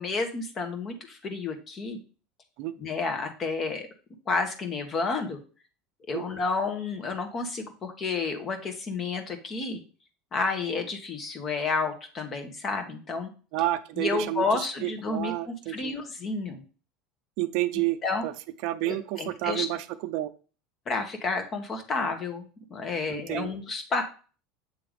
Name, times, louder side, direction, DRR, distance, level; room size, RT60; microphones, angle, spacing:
voice 1, 0.0-2.0 2.8-3.9 4.3-5.4 6.1-9.8 10.3-13.3 14.0-16.6 18.0-18.3 18.9-19.6 20.9-24.0, left 4 dB, 35° left, 6 dB, 1.6 m, -30 dB
voice 2, 13.5-15.9 17.4-18.0 18.2-18.3 18.6-20.3 23.1-23.5, right 15 dB, 65° right, 11 dB, 0.6 m, -30 dB
7.7 x 3.4 x 5.1 m, 0.37 s
supercardioid pair, 115°, 0 cm